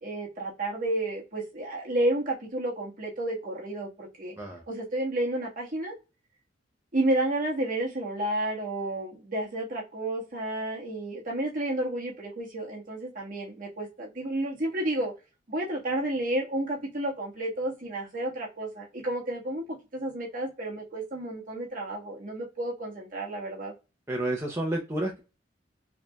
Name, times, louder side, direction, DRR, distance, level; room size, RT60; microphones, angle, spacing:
voice 1, 0.0-4.3 4.7-5.9 6.9-15.1 15.5-23.7, right 1 dB, 45° right, 1.6 m, -31 dB
voice 2, 24.1-25.2, right 1 dB, 15° right, 0.7 m, -30 dB
4.8 x 3.2 x 2.3 m
head